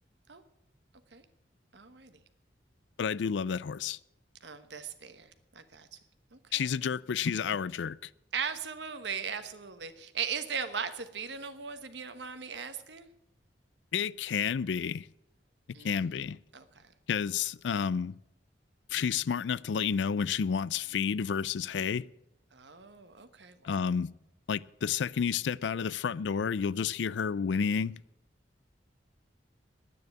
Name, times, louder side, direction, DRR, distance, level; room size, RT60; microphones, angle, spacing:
voice 1, 1.7-2.2 4.4-6.0 6.3-6.7 8.3-13.1 15.7-16.2 16.5-16.9 22.5-23.8, right 6 dB, 70° right, 1.2 m, -39 dB
voice 2, 3.0-4.0 6.5-8.1 13.9-15.1 15.8-16.4 17.1-18.1 18.9-22.1 23.6-24.1 24.5-27.9, left 6 dB, 80° left, 0.4 m, -30 dB
10.5 x 9.4 x 9.3 m
head